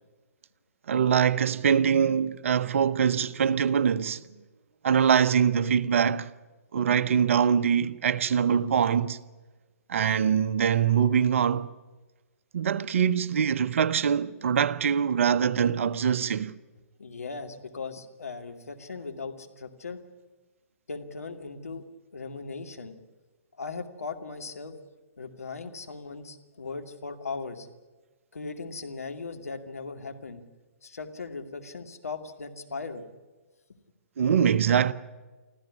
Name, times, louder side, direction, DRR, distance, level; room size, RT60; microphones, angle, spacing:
voice 1, 0.9-4.2 4.8-6.3 6.7-9.2 9.9-11.7 12.5-16.6 34.2-34.9, right 7 dB, 60° right, 0.9 m, -23 dB
voice 2, 17.0-20.0 20.9-21.8 22.1-22.9 23.6-24.8 25.2-27.7 28.3-30.4 30.8-33.1, left 4 dB, 75° left, 2.3 m, -38 dB
25.5 x 15.0 x 9.6 m
figure-of-eight pair, 125°, 8 cm